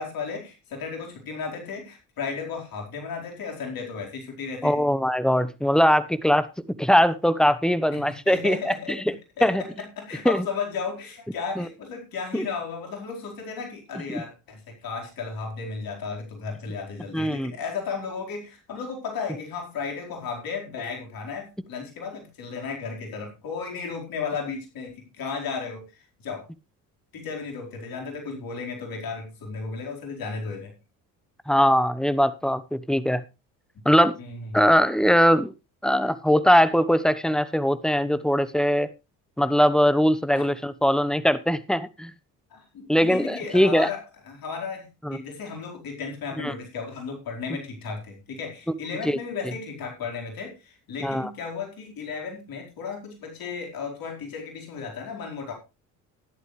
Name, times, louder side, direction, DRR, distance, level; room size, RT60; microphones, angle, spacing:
voice 1, 0.0-4.9 7.9-26.5 27.1-30.7 34.2-34.7 40.3-40.5 42.5-55.5, left 5 dB, 60° left, 1 dB, 4.6 m, -34 dB
voice 2, 4.6-6.5 6.8-9.1 9.4-9.6 10.2-10.4 11.6-11.7 12.3-12.4 14.1-14.2 17.1-17.5 31.5-33.2 33.8-34.2 34.5-35.5 35.8-38.9 39.4-42.1 42.9-43.9 45.0-45.2 46.4-46.5 49.0-49.2 51.0-51.3, equal, ahead, 16 dB, 1.0 m, -21 dB
13.0 x 11.0 x 3.3 m, 0.28 s
supercardioid pair, 65°, 39 cm